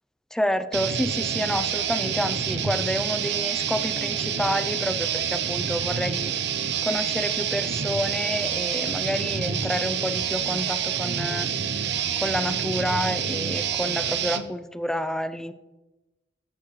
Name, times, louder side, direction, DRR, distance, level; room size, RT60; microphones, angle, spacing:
voice 1, 0.3-6.3 6.8-11.5 11.8-11.9 12.2-15.5, equal, 5° left, 11 dB, 0.4 m, -29 dB
sound 1, 0.7-14.4, right 8 dB, 65° right, 0.6 m, -27 dB
14.0 x 6.0 x 3.2 m, 1.1 s
head